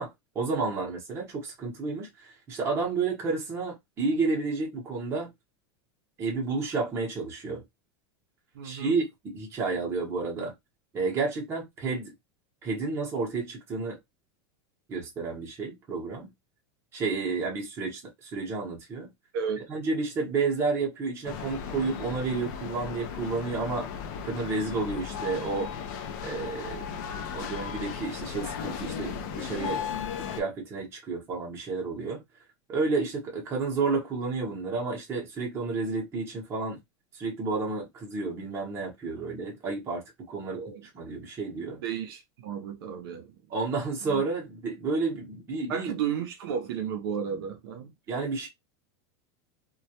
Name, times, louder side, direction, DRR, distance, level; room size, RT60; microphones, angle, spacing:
voice 1, 0.0-5.3 6.2-7.6 8.6-10.5 10.9-12.1 12.6-14.0 14.9-16.3 16.9-19.1 19.7-23.9 24.2-25.7 26.2-26.8 27.1-30.1 30.3-32.2 32.7-36.8 37.1-41.8 43.5-45.9 48.1-48.5, right 4 dB, 20° right, 0.8 m, -31 dB
voice 2, 8.5-9.0 19.3-19.7 40.5-40.8 41.6-43.3 44.0-44.2 45.7-47.9, right 7 dB, 65° right, 0.6 m, -33 dB
sound 1, 21.2-30.4, left 7 dB, 45° left, 0.4 m, -36 dB
2.2 x 2.1 x 2.7 m
supercardioid pair, 175°, 14 cm